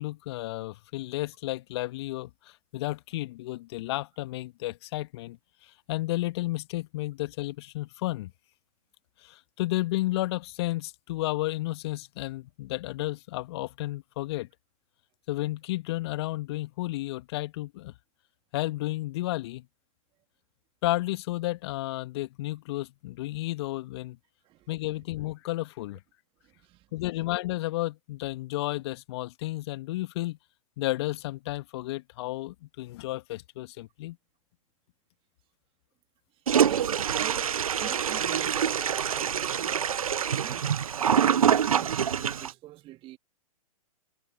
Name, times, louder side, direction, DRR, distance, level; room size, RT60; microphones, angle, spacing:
voice 1, 0.0-5.4 5.6-8.3 9.2-14.5 15.3-17.9 18.5-19.6 20.8-24.2 24.7-26.0 26.9-30.4 30.8-34.2, left 18 dB, 45° left, 1.5 m, -32 dB
voice 2, 26.4-26.9 36.6-39.9 40.4-43.2, right 16 dB, 30° right, 2.9 m, -43 dB
Toilet flush, 36.5-42.5, right 8 dB, 70° right, 0.7 m, -25 dB
figure-of-eight pair, 110°, 19 cm